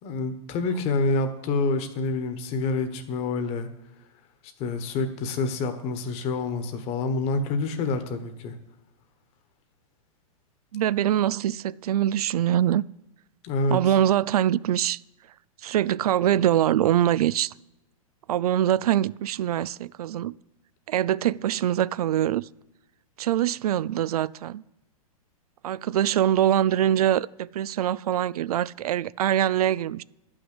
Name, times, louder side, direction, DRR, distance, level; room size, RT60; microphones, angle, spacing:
voice 1, 0.0-3.7 4.6-8.5 13.4-13.8, left 3 dB, 35° left, 1.3 m, -27 dB
voice 2, 10.7-12.8 13.7-15.0 15.6-17.5 18.3-20.3 20.9-22.5 23.2-24.6 25.6-30.0, right 11 dB, 85° right, 0.4 m, -23 dB
11.5 x 6.2 x 8.0 m
hypercardioid pair, 145°, 19 cm